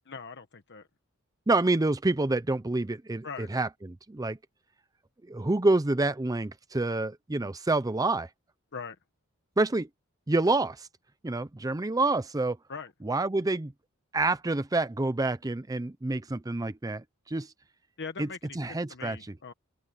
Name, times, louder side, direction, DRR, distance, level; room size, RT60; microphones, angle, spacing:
voice 1, 0.1-0.9 3.2-3.5 8.7-9.0 12.7-12.9 18.0-19.5, left 5 dB, 55° left, 1.1 m, -41 dB
voice 2, 1.5-4.4 5.3-8.3 9.6-9.9 10.3-10.9 11.2-12.6 13.0-13.7 14.1-17.5 18.2-19.3, right 2 dB, 15° right, 0.5 m, -28 dB
open air
head